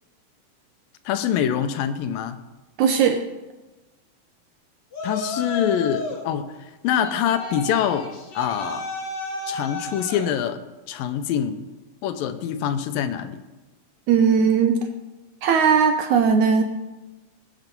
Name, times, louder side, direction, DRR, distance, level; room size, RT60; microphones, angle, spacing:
voice 1, 1.1-2.4 5.0-8.9 9.5-10.6 10.9-11.6 12.0-13.4, left 9 dB, 80° left, 10 dB, 2.5 m, -25 dB
voice 2, 2.8-3.3 14.1-14.8 15.4-16.6, right 6 dB, 75° right, 7 dB, 1.8 m, -18 dB
Yell, 4.9-6.3 7.0-10.3, left 2 dB, 40° left, 1.7 m, -32 dB
20.0 x 8.0 x 5.4 m, 1.1 s
omnidirectional pair, 4.1 m